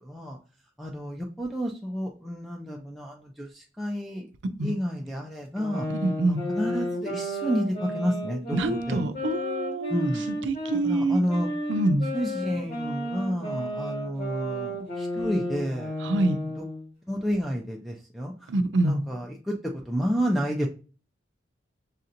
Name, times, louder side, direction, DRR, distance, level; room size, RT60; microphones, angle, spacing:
voice 1, 0.0-0.4 0.8-4.3 4.6-5.9 6.3-9.1 9.9-10.3 10.8-11.5 12.1-15.9 16.6-16.7 17.1-18.5 18.8-20.7, equal, ahead, -2 dB, 0.4 m, -30 dB
sound 1, 5.6-10.8 11.3-16.9, equal, 55° left, 2.3 m, -33 dB
voice 2, 6.0-6.5 8.5-10.1 10.5-11.2 11.7-12.1 16.0-16.4 18.5-19.0, right 2 dB, 80° right, 10 dB, 0.5 m, -25 dB
6.4 x 2.8 x 2.5 m, 0.37 s
head